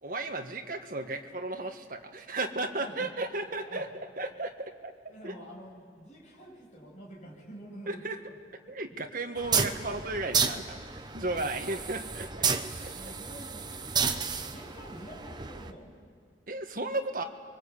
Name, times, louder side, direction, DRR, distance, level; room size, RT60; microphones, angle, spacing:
voice 1, 0.0-3.9 4.2-4.9 5.2-5.3 7.9-8.2 8.7-10.8 11.1-12.5 12.8-13.1 16.5-17.2, right 2 dB, 50° right, 4 dB, 1.7 m, -34 dB
voice 2, 2.7-3.1 3.6-3.9 5.1-8.4 8.7-8.8 10.5-10.7 11.3-11.5 12.9-13.6 14.1-16.0, right 1 dB, 40° left, -3 dB, 7.5 m, -48 dB
sound 1, 9.4-15.7, right 5 dB, 25° right, 1.0 m, -32 dB
29.0 x 23.5 x 8.6 m, 2.2 s
head